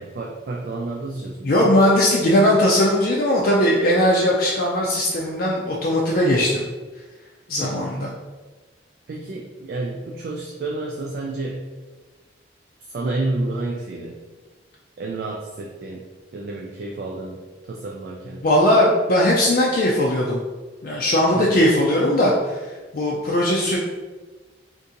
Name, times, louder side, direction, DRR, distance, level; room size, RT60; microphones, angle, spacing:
voice 1, 0.0-1.7 7.6-7.9 9.1-11.7 12.9-14.2 15.0-16.1 16.3-18.4 21.3-21.6, right 2 dB, 55° right, 0 dB, 0.3 m, -30 dB
voice 2, 1.4-6.6 7.5-8.1 18.4-20.4 20.8-23.8, left 1 dB, 50° left, -3 dB, 0.4 m, -19 dB
2.7 x 2.6 x 3.7 m, 1.3 s
head